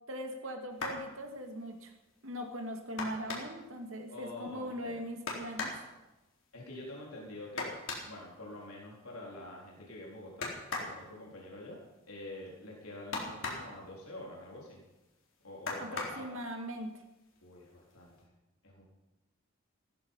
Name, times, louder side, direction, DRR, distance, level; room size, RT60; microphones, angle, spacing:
voice 1, 0.1-1.9 2.2-5.7 15.8-16.9, equal, 70° right, 4 dB, 2.4 m, -40 dB
sound 1, 0.7-1.1 3.0-3.7 5.3-5.9 7.6-8.1 10.4-11.0 13.1-13.8 15.7-16.3 17.4-17.5 17.9-18.1, left 3 dB, 60° left, 4.0 m, -38 dB
voice 2, 4.1-5.0 6.5-7.8 8.1-10.5 10.8-11.8 12.1-14.8 15.4-16.3 17.4-18.1 18.6-18.8, left 1 dB, 85° left, -3 dB, 4.2 m, -46 dB
16.5 x 14.0 x 5.7 m, 1.0 s
head